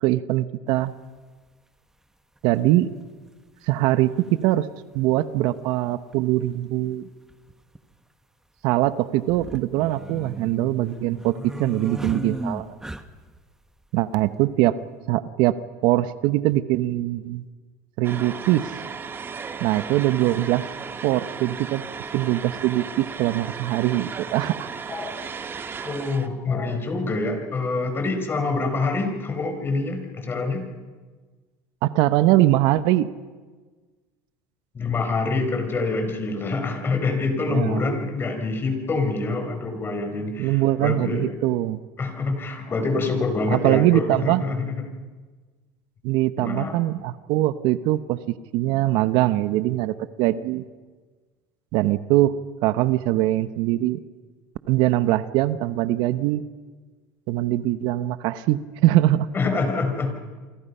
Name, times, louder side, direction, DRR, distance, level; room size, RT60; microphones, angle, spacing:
voice 1, 0.0-0.9 2.4-2.9 3.7-4.7 4.9-7.1 8.6-12.7 13.9-14.8 15.1-15.6 15.8-17.4 18.0-18.7 19.6-20.6 21.0-21.8 22.1-24.7 31.8-33.1 37.5-37.8 40.4-41.8 43.5-44.4 46.0-50.6 51.7-52.3 52.6-54.0 54.7-56.4 57.3-59.3, right 15 dB, 65° right, 13 dB, 1.0 m, -22 dB
sound 1, 0.8-0.9 2.4-2.5 3.9-4.0 4.2-4.3 6.1-6.3 6.5-6.6 7.3-7.8 9.2-13.4, right 1 dB, 5° right, 1.3 m, -35 dB
sound 2, 18.0-26.3, right 5 dB, 25° right, 1.6 m, -35 dB
voice 2, 24.9-25.3 25.8-30.7 34.7-41.4 42.0-44.9 46.4-46.8 59.3-60.1, left 3 dB, 25° left, 6 dB, 4.6 m, -26 dB
28.5 x 24.0 x 5.6 m, 1.4 s
supercardioid pair, 110°, 8 cm